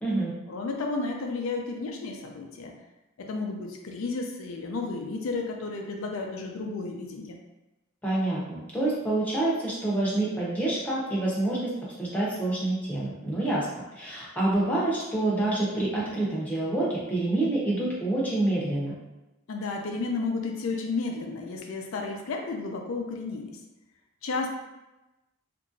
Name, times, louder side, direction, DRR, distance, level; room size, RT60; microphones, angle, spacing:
voice 1, 0.5-2.7 3.2-7.4 19.5-23.6 24.2-24.5, left 3 dB, 90° left, 2 dB, 0.4 m, -32 dB
voice 2, 8.0-11.7 12.0-13.7 14.0-18.9, right 2 dB, 10° left, -7 dB, 0.7 m, -27 dB
2.9 x 2.5 x 2.6 m, 1.0 s
head